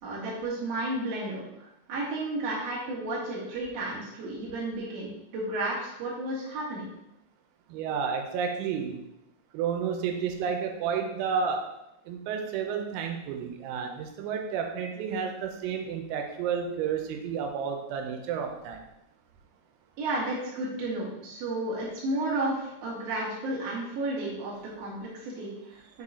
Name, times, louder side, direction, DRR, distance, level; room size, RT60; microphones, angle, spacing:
voice 1, 0.0-6.9 20.0-26.0, right 2 dB, 55° right, -7 dB, 1.8 m, -32 dB
voice 2, 7.7-9.0 9.5-11.7 12.1-18.8, right 6 dB, 90° right, 3 dB, 3.4 m, -31 dB
7.4 x 4.9 x 2.7 m, 0.85 s
omnidirectional pair, 6.0 m